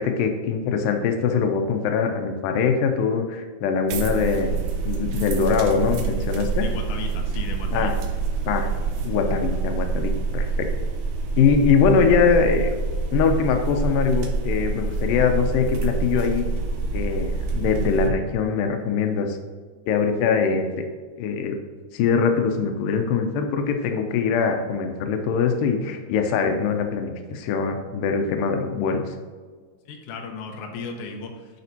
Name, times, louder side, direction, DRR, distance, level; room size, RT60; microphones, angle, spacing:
voice 1, 0.0-4.6 4.9-6.6 7.7-8.0 8.5-8.7 9.0-10.7 11.4-12.7 13.1-16.5 16.9-19.4 19.9-20.6 21.2-21.6 21.9-29.1, left 5 dB, 90° left, 5 dB, 2.3 m, -22 dB
sound 1, 3.9-18.1, right 4 dB, 75° right, 2.3 m, -26 dB
voice 2, 6.6-7.9 29.9-31.3, left 4 dB, 75° left, 2 dB, 2.2 m, -35 dB
10.5 x 5.1 x 2.8 m, 1.5 s
omnidirectional pair, 3.9 m